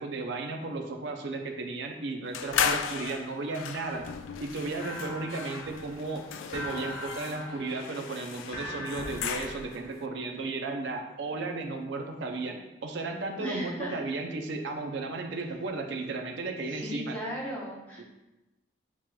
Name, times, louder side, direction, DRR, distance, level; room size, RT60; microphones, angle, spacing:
voice 1, 0.0-4.1 4.4-17.1 18.0-18.1, right 3 dB, 70° right, 3 dB, 0.5 m, -34 dB
sound 1, 2.3-9.9, left 7 dB, 85° left, 0.3 m, -35 dB
sound 2, 4.8-10.0, left 1 dB, 45° left, 0.8 m, -41 dB
voice 2, 13.4-14.0 16.7-18.0, equal, 10° left, -6 dB, 0.9 m, -36 dB
7.2 x 3.0 x 2.2 m, 1.0 s
head